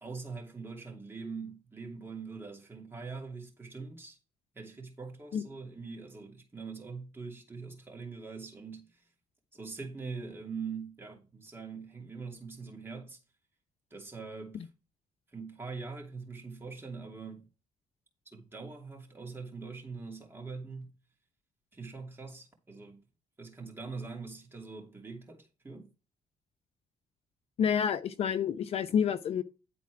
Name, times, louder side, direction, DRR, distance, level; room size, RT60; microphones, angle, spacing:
voice 1, 0.0-4.2 4.5-9.1 9.5-13.2 13.9-14.7 15.3-17.5 18.3-20.9 21.7-23.0 23.4-25.9, right 4 dB, 20° right, 2.7 m, -43 dB
voice 2, 27.6-29.4, left 7 dB, 55° left, 0.7 m, -28 dB
11.0 x 4.2 x 4.7 m
cardioid pair, 115°, 12 cm